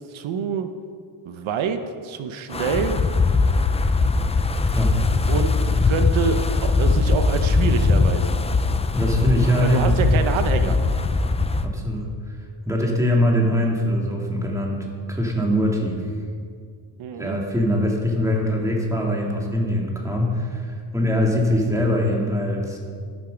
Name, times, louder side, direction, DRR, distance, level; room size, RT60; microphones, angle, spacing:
voice 1, 0.1-0.7 1.3-3.0 5.3-8.4 9.6-10.8 17.0-17.4, right 6 dB, 80° right, 8 dB, 1.0 m, -26 dB
Wind, 2.5-11.7, left 3 dB, 15° left, 0.3 m, -20 dB
voice 2, 8.9-10.0 10.6-10.7 11.6-12.4 12.7-16.0 17.2-22.8, equal, 5° right, -1 dB, 2.0 m, -22 dB
12.5 x 12.0 x 5.1 m, 2.1 s
cardioid pair, 160°, 47 cm